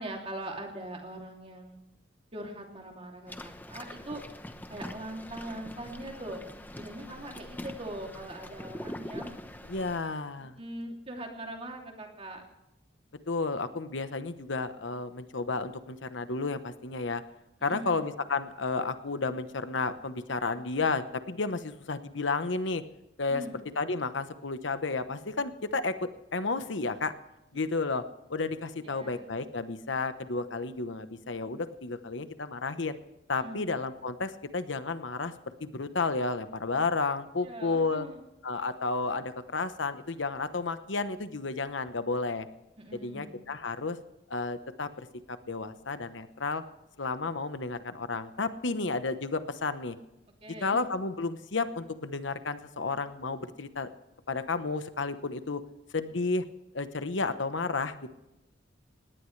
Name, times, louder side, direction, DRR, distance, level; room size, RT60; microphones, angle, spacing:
voice 1, 0.0-1.8 2.3-4.2 4.7-6.4 6.8-9.4 10.4-12.4 17.7-18.0 23.3-23.6 28.8-29.3 33.4-33.6 37.4-38.2 38.5-38.6 42.8-43.4 50.4-50.8, right 1 dB, 30° right, 1 dB, 2.8 m, -41 dB
sound 1, 3.3-10.0, left 1 dB, 10° left, 0.9 m, -43 dB
voice 2, 9.7-10.6 13.3-17.2 17.6-22.8 23.2-23.4 23.8-27.1 27.5-28.0 28.3-33.0 33.3-35.3 35.6-38.1 38.4-42.5 42.9-44.0 44.3-45.1 45.5-46.6 47.0-49.9 50.6-53.9 54.3-55.6 55.9-56.4 56.7-58.1, left 3 dB, 75° left, 11 dB, 1.0 m, -32 dB
20.0 x 18.0 x 3.3 m, 0.93 s
head